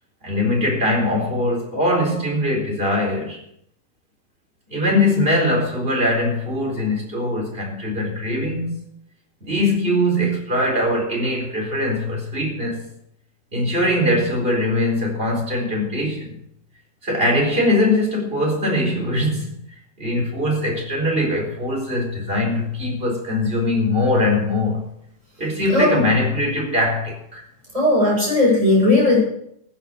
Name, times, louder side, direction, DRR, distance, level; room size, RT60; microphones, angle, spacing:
voice 1, 0.2-3.4 4.7-8.8 9.4-12.8 13.5-16.3 17.0-19.5 20.0-24.8 25.4-27.4, left 1 dB, 35° right, -1 dB, 4.5 m, -21 dB
voice 2, 25.7-26.0 27.7-29.2, left 2 dB, 20° right, -4 dB, 8.0 m, -16 dB
15.0 x 8.8 x 6.7 m, 0.72 s
omnidirectional pair, 1.7 m